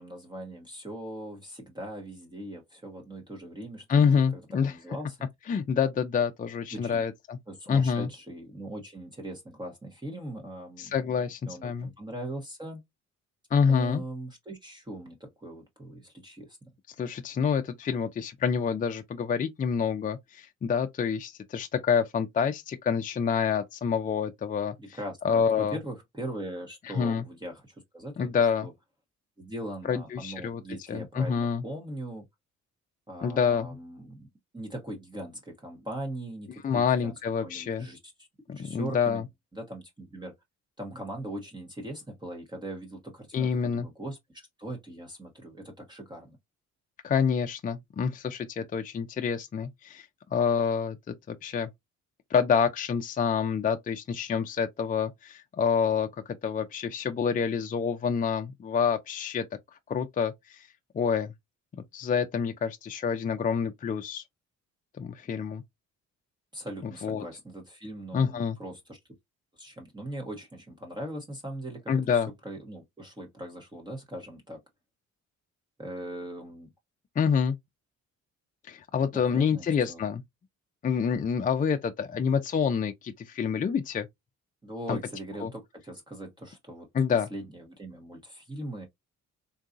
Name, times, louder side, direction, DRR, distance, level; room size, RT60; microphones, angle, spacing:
voice 1, 0.0-4.0 4.5-5.2 6.7-7.0 7.5-11.0 11.5-12.8 13.7-16.6 24.8-28.7 29.4-32.2 33.1-34.3 34.5-38.0 38.5-39.2 39.5-40.3 40.8-46.4 66.5-69.0 69.6-74.6 75.8-76.7 79.1-80.0 84.6-86.9 87.3-88.9, right 1 dB, 15° right, 1.0 m, -40 dB
voice 2, 3.9-4.7 5.5-7.4 7.7-8.1 10.8-11.9 13.5-14.0 17.0-25.0 25.2-25.8 26.9-27.2 28.2-28.7 29.9-30.6 30.9-31.6 33.2-33.8 36.6-37.9 38.5-39.2 43.3-43.9 47.0-51.7 52.3-59.4 59.9-60.7 60.9-61.3 61.9-64.2 65.0-65.6 67.0-67.2 68.1-68.6 71.9-72.3 77.2-77.6 78.6-80.2 80.8-84.1 84.9-85.0 85.4-85.5 86.9-87.3, left 6 dB, 30° left, 0.4 m, -27 dB
3.8 x 2.3 x 2.5 m
cardioid pair, 90°, 30 cm